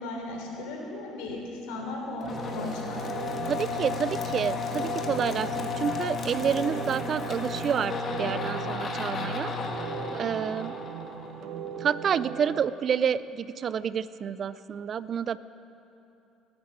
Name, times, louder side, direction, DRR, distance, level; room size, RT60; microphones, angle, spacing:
voice 1, 0.0-3.0, left 2 dB, 85° left, 1 dB, 3.4 m, -36 dB
sound 1, 2.2-11.8, left 4 dB, 40° left, 1.8 m, -33 dB
sound 2, 2.3-12.6, right 8 dB, 65° right, 1.0 m, -39 dB
voice 2, 3.4-9.5 10.1-10.8 11.8-15.4, right 7 dB, 45° right, 17 dB, 0.4 m, -29 dB
19.0 x 9.7 x 7.4 m, 2.9 s
supercardioid pair, 100°, 0 cm